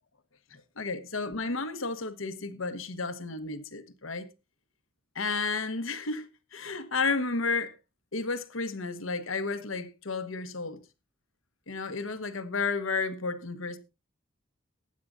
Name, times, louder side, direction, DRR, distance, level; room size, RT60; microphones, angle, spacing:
voice 1, 0.5-4.3 5.1-7.7 8.1-10.8 11.7-13.8, left 4 dB, 85° left, 1.3 m, -32 dB
20.0 x 9.5 x 2.6 m
head